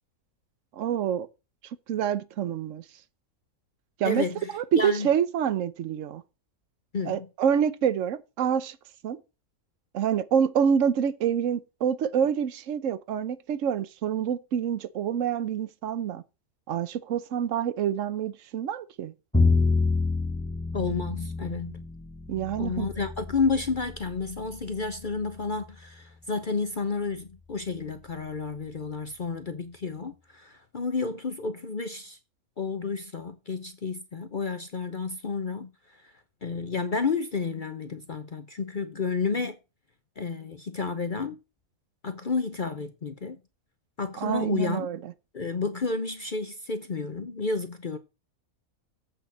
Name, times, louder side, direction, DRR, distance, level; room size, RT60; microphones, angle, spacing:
voice 1, 0.8-1.3 1.9-2.8 4.0-4.2 4.5-6.2 7.1-8.8 9.0-9.2 9.9-16.2 16.7-19.1 22.3-22.9 44.2-45.1, right 8 dB, 65° right, 1.1 m, -27 dB
voice 2, 4.0-5.1 6.9-7.3 20.7-21.8 22.6-32.2 32.6-35.7 36.4-39.6 40.2-41.4 42.0-43.4 44.0-44.9 45.3-48.0, left 4 dB, 45° left, 0.8 m, -31 dB
Bowed string instrument, 19.3-25.5, left 3 dB, 10° left, 0.5 m, -28 dB
8.1 x 6.5 x 6.1 m
omnidirectional pair, 1.5 m